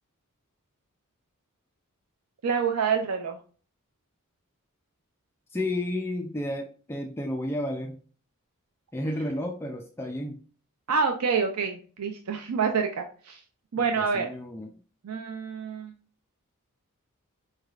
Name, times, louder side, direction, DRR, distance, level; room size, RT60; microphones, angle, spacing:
voice 1, 2.4-3.4 10.9-13.4 13.7-14.3 15.0-15.9, right 5 dB, 85° right, 4 dB, 0.5 m, -27 dB
voice 2, 5.5-8.0 8.9-10.4 13.8-14.7, left 1 dB, 10° left, 2 dB, 0.3 m, -32 dB
4.7 x 3.2 x 2.4 m, 0.40 s
head